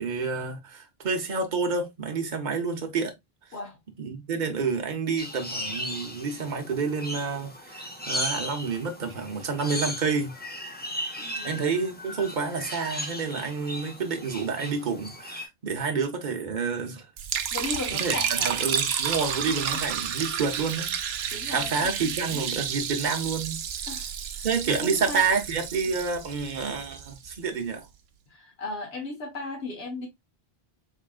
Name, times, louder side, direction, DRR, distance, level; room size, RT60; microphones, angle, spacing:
voice 1, 0.0-3.1 4.0-10.4 11.4-17.1 17.9-23.6 24.4-27.9, right 5 dB, 50° right, 1.0 m, -29 dB
sound 1, 5.2-15.5, equal, 10° left, 0.5 m, -36 dB
voice 2, 11.2-11.6 17.5-18.5 20.5-20.6 21.3-22.6 23.9-24.5 24.8-25.2 28.3-30.1, left 3 dB, 75° left, 1.7 m, -36 dB
Liquid, 17.2-27.4, right 8 dB, 75° right, 0.8 m, -31 dB
3.6 x 3.6 x 2.3 m
omnidirectional pair, 1.1 m